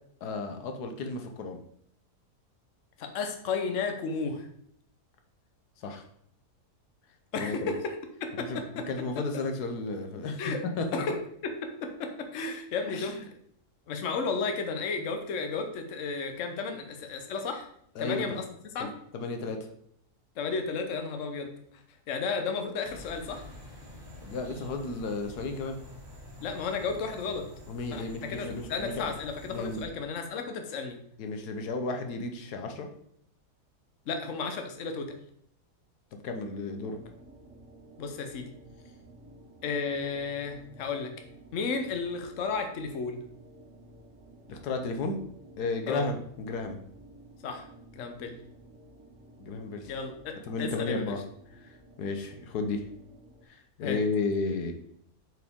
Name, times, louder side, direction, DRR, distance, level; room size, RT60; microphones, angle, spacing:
voice 1, 0.2-1.6 5.8-6.0 7.4-7.7 8.4-8.6 8.9-10.4 10.8-11.0 12.9-13.1 18.0-18.4 18.8-19.7 24.2-25.8 27.7-29.1 29.5-29.8 31.2-32.9 36.1-37.0 44.5-45.2 45.6-46.8 49.4-49.9 50.5-51.2 52.0-52.8 53.5-54.7, left 3 dB, 85° left, 5 dB, 1.4 m, -33 dB
voice 2, 3.0-4.5 7.3-7.9 8.4-8.8 10.4-10.6 10.9-11.2 11.4-11.5 11.8-13.1 13.9-17.7 18.0-18.4 18.7-18.9 20.4-21.5 22.1-23.4 26.4-27.4 27.9-31.0 34.1-35.1 38.0-38.5 39.6-41.1 41.5-43.2 45.9-46.0 47.4-47.7 47.9-48.4 49.9-51.2 53.8-54.0, left 4 dB, 55° left, 5 dB, 1.2 m, -33 dB
sound 1, 22.8-29.9, left 1 dB, 30° right, 1.6 m, -47 dB
sound 2, 36.8-53.4, right 1 dB, 55° right, 1.7 m, -54 dB
7.7 x 4.8 x 3.6 m, 0.68 s
omnidirectional pair, 1.7 m